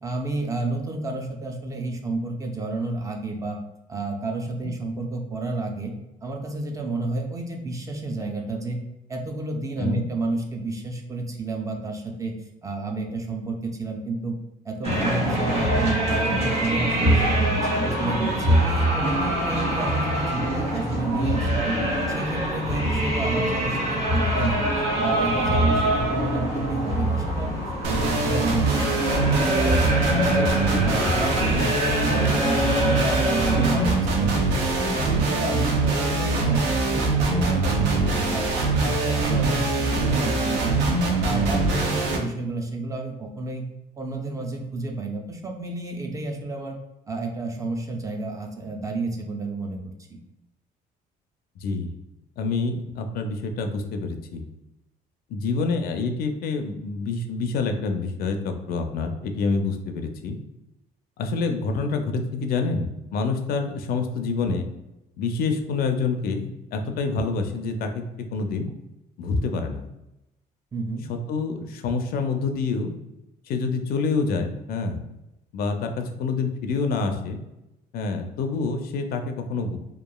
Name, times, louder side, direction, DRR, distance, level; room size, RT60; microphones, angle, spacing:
voice 1, 0.0-3.6 3.9-5.9 6.2-8.8 9.1-12.3 12.6-14.3 14.6-17.5 17.7-21.8 22.1-24.6 25.0-27.5 27.9-30.5 30.8-34.3 34.6-38.5 38.8-40.9 41.2-43.6 44.0-46.8 47.1-49.8 70.7-71.1, right 2 dB, 20° right, 2 dB, 0.4 m, -30 dB
sound 1, 14.8-34.0, equal, 35° right, 1.0 m, -24 dB
sound 2, 27.8-42.2, right 3 dB, 90° right, 0.5 m, -23 dB
voice 2, 52.4-54.4 55.3-60.4 61.2-62.9 63.1-64.6 65.2-68.0 68.3-68.7 69.2-69.9 71.1-72.9 73.5-75.0 75.5-77.4 77.9-79.8, left 4 dB, 65° left, 6 dB, 0.4 m, -27 dB
2.9 x 2.3 x 2.2 m, 0.91 s
cardioid pair, 110°, 17 cm